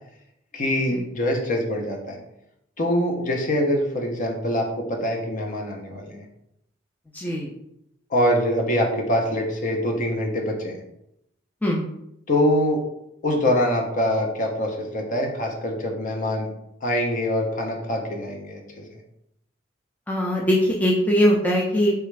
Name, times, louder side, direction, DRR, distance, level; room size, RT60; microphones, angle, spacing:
voice 1, 0.5-2.2 2.8-6.2 8.1-10.8 12.3-12.8 13.2-16.5 16.8-18.8, left 1 dB, 45° left, 1 dB, 0.6 m, -24 dB
voice 2, 7.1-7.5 11.6-11.9 20.1-21.9, equal, 10° left, -3 dB, 0.3 m, -21 dB
3.3 x 2.4 x 3.1 m, 0.79 s
head